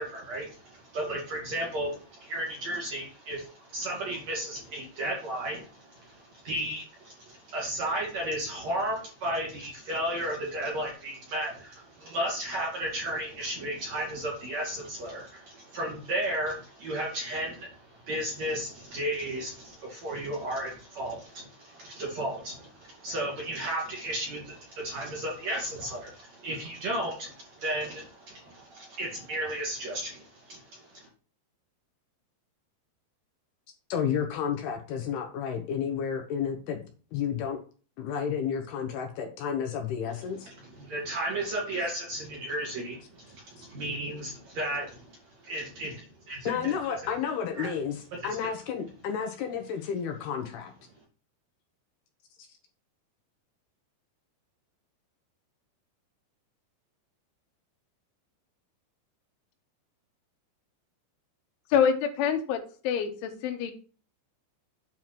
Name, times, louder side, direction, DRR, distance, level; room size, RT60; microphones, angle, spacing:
voice 1, 0.0-31.1 40.6-46.7 47.6-47.7 48.1-48.3, right 1 dB, 45° right, -2 dB, 2.7 m, -34 dB
voice 2, 33.9-36.8 37.1-37.6 38.0-40.5 46.5-50.7 52.4-52.5, left 7 dB, 70° left, 4 dB, 2.6 m, -31 dB
voice 3, 61.7-62.6 62.9-63.7, left 7 dB, 90° left, 6 dB, 3.6 m, -26 dB
9.1 x 4.5 x 6.0 m, 0.38 s
omnidirectional pair, 5.3 m